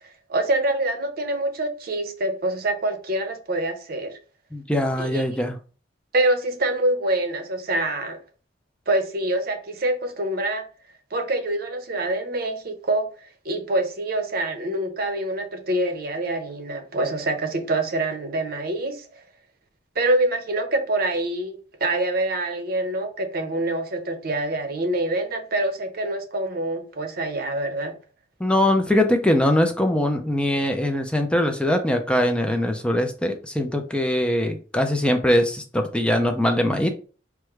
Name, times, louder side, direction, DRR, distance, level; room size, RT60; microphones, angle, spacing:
voice 1, 0.3-4.1 5.0-5.2 6.1-8.2 8.9-10.6 11.1-13.1 13.4-19.2 20.0-28.0, right 2 dB, 55° right, 0.8 m, -25 dB
voice 2, 4.5-5.6 28.4-36.9, left 1 dB, 5° left, 0.4 m, -22 dB
4.7 x 2.1 x 4.6 m
head